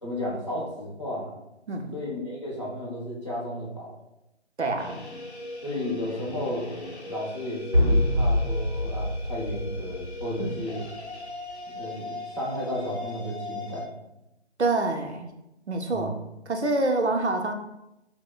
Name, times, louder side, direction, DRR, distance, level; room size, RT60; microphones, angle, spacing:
voice 1, 0.0-1.3 1.9-4.0 5.6-6.7 7.1-10.8 11.7-13.9 15.9-16.1, left 1 dB, 25° left, -6 dB, 0.8 m, -33 dB
voice 2, 4.6-5.0 10.4-10.6 14.6-15.3 15.7-16.1 16.5-17.5, right 2 dB, 70° right, 4 dB, 0.6 m, -26 dB
sound 1, 4.8-13.9, left 2 dB, 70° left, 0.8 m, -39 dB
sound 2, 7.7-10.6, left 1 dB, 30° right, 0.7 m, -25 dB
6.2 x 2.1 x 2.3 m, 0.89 s
figure-of-eight pair, 160°, 35 cm